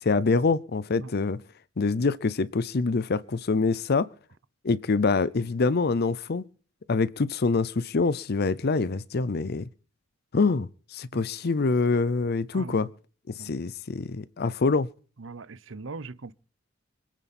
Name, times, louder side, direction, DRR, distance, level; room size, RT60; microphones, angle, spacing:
voice 1, 0.0-1.4 1.8-4.1 4.6-6.4 6.9-9.7 10.3-12.9 13.4-14.9, left 4 dB, 55° left, 0.6 m, -25 dB
voice 2, 12.5-12.9 13.4-13.6 15.2-16.3, right 3 dB, 70° right, 0.8 m, -40 dB
25.5 x 9.0 x 4.3 m
head